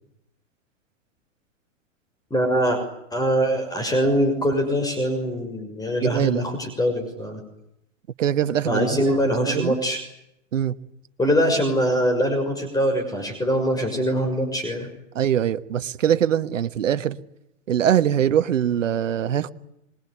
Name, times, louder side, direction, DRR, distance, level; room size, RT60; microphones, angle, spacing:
voice 1, 2.3-2.8 3.1-7.4 8.6-10.0 11.2-14.9, equal, 10° left, 6.2 m, -23 dB
voice 2, 6.0-6.4 8.2-9.7 10.5-10.7 15.1-17.2 17.7-19.5, right 9 dB, 75° right, 1.4 m, -23 dB
26.5 x 22.0 x 9.9 m
hypercardioid pair, 110°, 38 cm